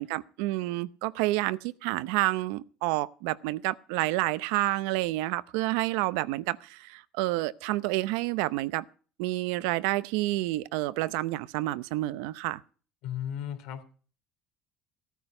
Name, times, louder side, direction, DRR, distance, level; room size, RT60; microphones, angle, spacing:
voice 1, 0.0-8.8 9.2-12.6, right 18 dB, 85° right, 0.7 m, -29 dB
voice 2, 13.0-13.8, left 10 dB, 70° left, 3.1 m, -35 dB
16.5 x 9.2 x 5.4 m
cardioid pair, 145°, 0 cm